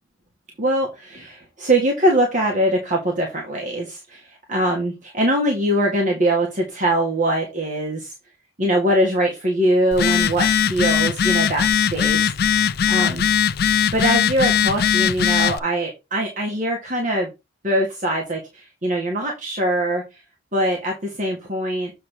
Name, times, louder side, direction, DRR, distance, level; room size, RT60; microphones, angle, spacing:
voice 1, 0.6-8.1 8.6-13.2 13.9-17.3 17.6-20.2 20.5-21.9, right 1 dB, 40° right, 0 dB, 1.6 m, -22 dB
Telephone, 9.9-15.6, left 8 dB, 50° left, 0.4 m, -19 dB
7.4 x 3.4 x 6.2 m, 0.25 s
head